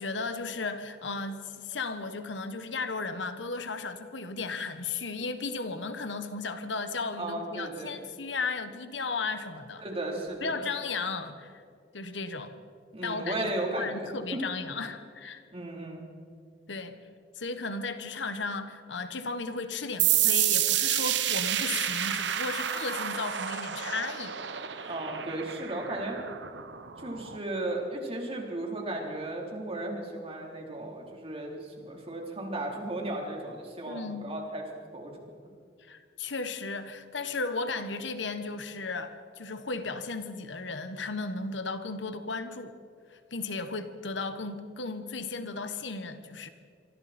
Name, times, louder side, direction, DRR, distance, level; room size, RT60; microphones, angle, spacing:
voice 1, 0.0-9.8 10.4-11.6 11.9-12.5 13.0-13.5 13.7-15.4 16.7-17.0 17.3-24.4 24.7-24.9 33.9-34.3 35.8-42.8 43.1-46.5, left 4 dB, 80° left, 9 dB, 1.4 m, -35 dB
voice 2, 7.1-8.0 9.8-10.6 12.9-14.4 15.5-16.0 24.9-26.2 27.0-34.6 34.9-35.2, right 1 dB, 35° right, 0 dB, 3.8 m, -35 dB
sound 1, 20.0-27.4, right 11 dB, 70° right, 1.1 m, -29 dB
26.0 x 24.5 x 4.4 m, 2.2 s
head